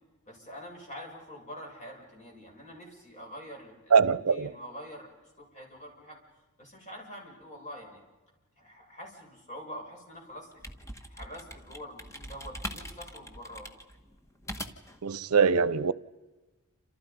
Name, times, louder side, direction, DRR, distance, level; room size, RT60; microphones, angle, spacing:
voice 1, 0.3-6.2 6.6-8.0 8.6-13.7, equal, 35° left, 6.9 m, -46 dB
voice 2, 3.9-4.5 15.0-15.9, right 5 dB, 85° right, 0.7 m, -23 dB
sound 1, 10.3-15.0, equal, 15° left, 1.6 m, -42 dB
29.0 x 28.0 x 5.4 m
head